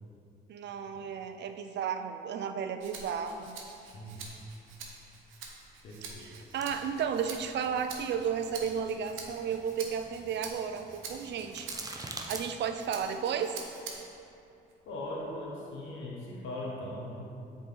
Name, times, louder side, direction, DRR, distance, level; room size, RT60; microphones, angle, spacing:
voice 1, 0.5-3.6 6.2-11.7 12.1-13.6, right 7 dB, 60° right, 8 dB, 0.5 m, -33 dB
Rattle (instrument), 2.8-14.2 14.7-15.9, right 4 dB, 80° right, 0.9 m, -47 dB
voice 2, 5.8-6.4 14.9-17.3, left 1 dB, 80° left, -3 dB, 1.0 m, -39 dB
sound 1, 6.6-12.4, right 2 dB, 20° right, 0.6 m, -47 dB
7.4 x 3.9 x 3.9 m, 2.6 s
cardioid pair, 90°, 20 cm